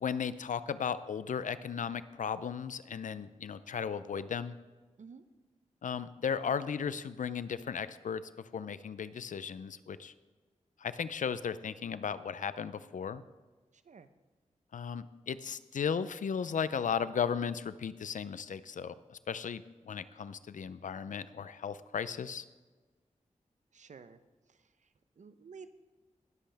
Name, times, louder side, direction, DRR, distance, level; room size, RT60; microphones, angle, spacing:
voice 1, 0.0-4.5 5.8-8.2 8.5-10.1 10.8-13.2 14.7-22.4, left 7 dB, 85° left, 14 dB, 0.5 m, -36 dB
voice 2, 13.7-14.1 23.7-24.2 24.5-25.7, right 5 dB, 70° right, 11 dB, 0.7 m, -53 dB
19.0 x 7.7 x 3.4 m, 1.3 s
wide cardioid pair, 70°, 13 cm